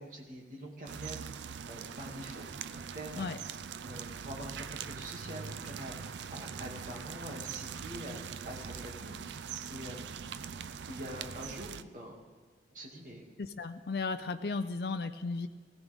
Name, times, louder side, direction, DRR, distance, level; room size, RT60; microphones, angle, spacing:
voice 1, 0.0-2.4 2.7-3.3 3.8-9.1 9.7-10.2 10.9-12.2 12.7-13.2, equal, 45° right, -1 dB, 2.3 m, -45 dB
sound 1, 0.9-11.8, right 7 dB, 85° right, 0.4 m, -42 dB
voice 2, 13.4-15.5, left 4 dB, 65° left, 8 dB, 0.5 m, -35 dB
19.5 x 16.0 x 3.6 m, 1.4 s
head